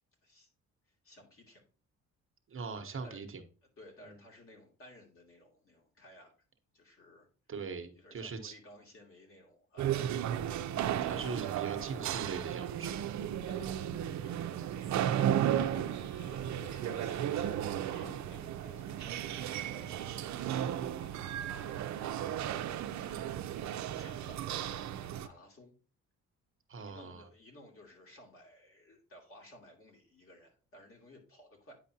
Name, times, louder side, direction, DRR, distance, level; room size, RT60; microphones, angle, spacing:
voice 1, 1.0-1.7 3.0-3.2 3.8-6.3 6.7-7.3 7.9-10.0 13.4-14.0 14.2-21.7 22.5-23.3 23.6-24.9 25.2-25.7 26.8-31.7, left 1 dB, 45° left, 0 dB, 2.6 m, -56 dB
voice 2, 2.5-3.4 7.5-8.5 10.6-13.0 26.7-27.3, right 4 dB, 45° right, 6 dB, 1.0 m, -41 dB
sound 1, 9.8-25.3, right 10 dB, 65° right, 0.6 m, -34 dB
sound 2, 14.6-25.4, left 5 dB, 80° left, 1.9 m, -62 dB
9.3 x 4.9 x 2.8 m, 0.36 s
cardioid pair, 90°, 30 cm